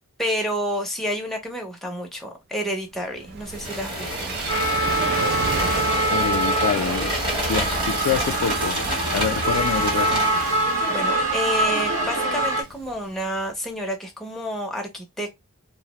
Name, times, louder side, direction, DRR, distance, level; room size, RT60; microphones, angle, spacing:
voice 1, 0.2-4.3 10.9-15.3, equal, ahead, 0.6 m, -29 dB
Gull seagull / Waves surf, 2.9-13.5, right 5 dB, 45° right, 0.4 m, -34 dB
sound 1, 3.5-10.6, equal, 25° right, 1.0 m, -29 dB
sound 2, 4.5-12.6, right 1 dB, 70° right, 0.9 m, -24 dB
voice 2, 6.1-7.1 7.5-8.8 9.1-10.3, left 7 dB, 65° left, 0.3 m, -26 dB
2.5 x 2.0 x 2.9 m
head